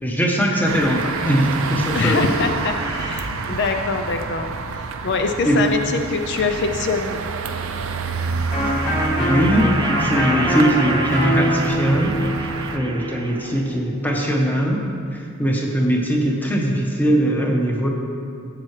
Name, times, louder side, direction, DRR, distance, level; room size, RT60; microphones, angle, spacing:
voice 1, 0.0-2.5 3.5-3.6 5.4-5.6 9.2-9.6 10.0-12.2 12.7-14.8 15.1-17.9, right 1 dB, 10° left, -1 dB, 1.0 m, -20 dB
sound 1, 0.6-12.8, right 4 dB, 70° right, 0.5 m, -29 dB
sound 2, 1.5-4.1 5.3-6.3 7.9-13.9, right 3 dB, 20° right, 0.4 m, -33 dB
voice 2, 1.9-4.5 5.0-7.7, left 4 dB, 55° left, 5 dB, 0.5 m, -24 dB
Electric guitar, 8.5-14.1, equal, 30° left, 2.6 m, -24 dB
14.0 x 7.5 x 3.2 m, 2.4 s
head